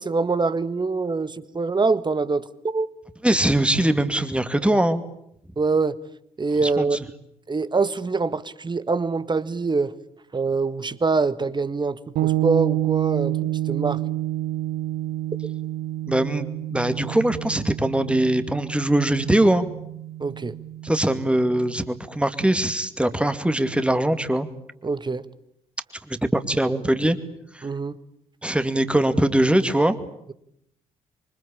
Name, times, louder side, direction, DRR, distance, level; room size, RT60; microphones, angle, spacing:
voice 1, 0.0-2.9 5.6-6.0 6.4-7.0 7.5-9.9 10.3-14.0 20.2-20.5 24.8-25.2 27.6-28.0, right 4 dB, 25° right, 15 dB, 1.5 m, -24 dB
voice 2, 3.2-5.0 6.6-7.0 16.1-19.7 20.8-24.5 26.1-27.2 27.5-27.6 28.4-29.9, right 1 dB, 5° right, 9 dB, 2.4 m, -22 dB
sound 1, 12.2-21.8, right 14 dB, 60° right, 1.0 m, -29 dB
27.0 x 24.5 x 8.7 m, 0.74 s
figure-of-eight pair, 45°, 18 cm